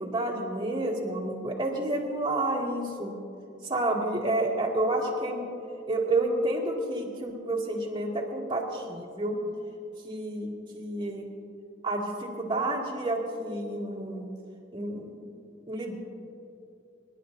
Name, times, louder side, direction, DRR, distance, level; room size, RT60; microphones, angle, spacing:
voice 1, 0.0-3.1 3.6-5.4 5.9-9.4 10.0-11.3 11.8-14.3 14.7-15.1 15.7-16.0, right 2 dB, 25° right, -4 dB, 2.3 m, -30 dB
27.5 x 11.5 x 2.7 m, 2.7 s
head